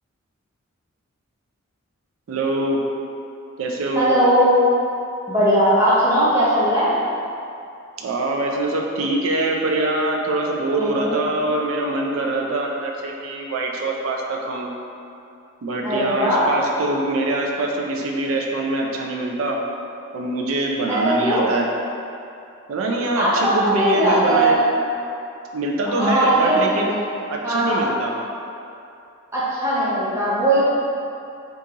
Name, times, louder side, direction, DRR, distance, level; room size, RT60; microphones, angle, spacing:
voice 1, 2.3-2.8 3.6-4.1 8.0-14.7 15.6-19.6 20.1-21.7 22.7-24.6 25.5-27.0 27.3-28.1, right 2 dB, 70° right, 0 dB, 0.4 m, -24 dB
voice 2, 4.0-4.5 5.3-6.9 10.8-11.2 15.8-16.4 20.9-21.5 23.2-24.6 25.9-26.6 26.9-27.0 27.4-27.8 29.3-30.6, right 1 dB, 15° right, -10 dB, 0.8 m, -19 dB
3.8 x 2.4 x 2.8 m, 2.6 s
head